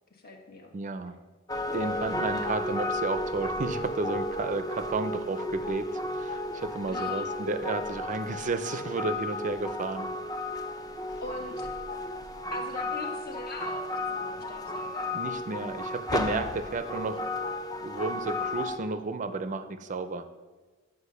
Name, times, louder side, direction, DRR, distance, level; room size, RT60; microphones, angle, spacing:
voice 1, 0.1-0.7 2.3-2.7 6.9-7.3 11.2-11.7 12.5-15.1, left 2 dB, 50° left, 2 dB, 1.3 m, -41 dB
voice 2, 0.7-1.1 1.7-10.1 15.1-17.3 17.8-20.3, right 3 dB, 40° right, 10 dB, 0.5 m, -32 dB
sound 1, 1.5-18.8, left 1 dB, 20° left, 0.6 m, -33 dB
8.3 x 5.2 x 6.7 m, 1.3 s
head